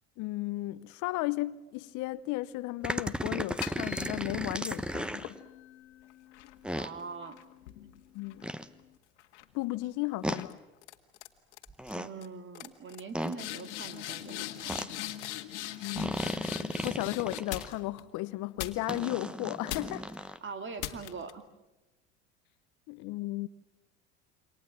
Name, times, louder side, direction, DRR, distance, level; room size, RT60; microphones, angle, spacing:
voice 1, 0.2-5.4 8.1-8.5 9.5-10.6 15.8-16.2 16.8-20.3 22.9-23.5, left 19 dB, 55° left, 0.9 m, -35 dB
sound 1, 2.8-5.3 6.6-6.9 8.4-8.7 10.2-10.4 11.7-12.1 13.1-13.4 14.7-14.9 16.0-17.7 18.9-20.4, equal, 5° right, 1.1 m, -35 dB
sound 2, 3.6-4.6 5.2-8.8 9.2-9.6 10.3-10.5 10.8-11.3 11.5-11.9 12.2-12.3 12.5-18.0 18.6-19.2 19.7-20.2 20.8-21.3, left 14 dB, 75° left, 1.8 m, -41 dB
voice 2, 6.7-7.4 11.9-15.0 20.4-21.4, right 5 dB, 35° right, 2.6 m, -43 dB
28.0 x 24.5 x 7.4 m
hypercardioid pair, 80°, 35 cm